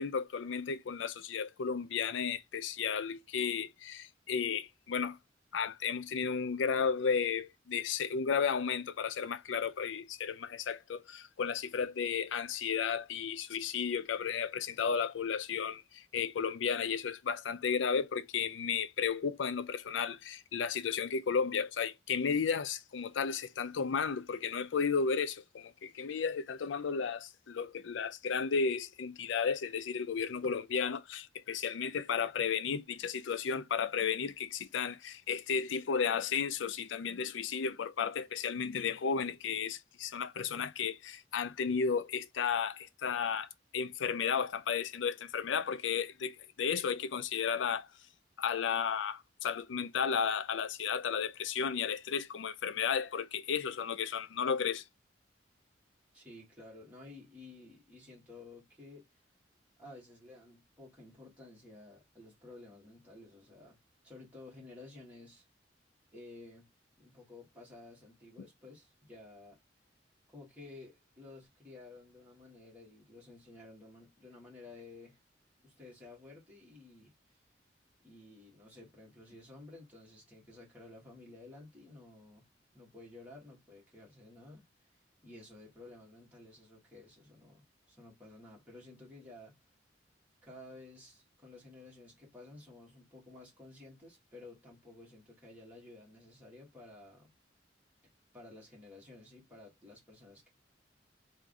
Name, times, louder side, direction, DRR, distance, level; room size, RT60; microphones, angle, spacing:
voice 1, 0.0-5.2 5.5-47.9 48.4-54.8, left 6 dB, 90° left, 0.4 m, -33 dB
voice 2, 56.1-59.0 59.8-63.8 64.0-65.4 66.1-66.7 67.0-69.6 70.3-75.2 75.6-77.1 78.0-82.5 82.7-84.6 85.2-87.6 87.9-89.6 90.4-97.3 98.3-100.5, left 2 dB, 10° right, 1.5 m, -53 dB
3.5 x 2.5 x 3.7 m
head